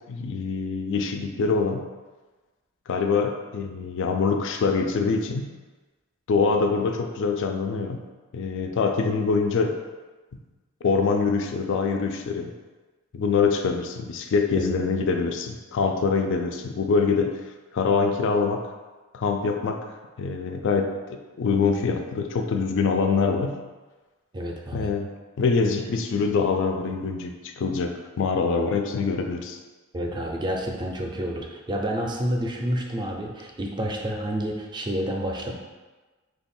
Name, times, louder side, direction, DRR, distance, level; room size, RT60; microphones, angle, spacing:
voice 1, 0.1-1.8 2.9-5.5 6.3-8.0 8.3-9.8 10.8-12.5 13.1-17.4 17.7-18.6 19.1-19.8 20.2-23.6 24.7-29.6, left 4 dB, 60° left, 4 dB, 0.3 m, -24 dB
voice 2, 24.3-24.9 29.9-35.5, equal, 20° right, 1 dB, 0.4 m, -29 dB
3.3 x 2.3 x 4.2 m, 1.3 s
head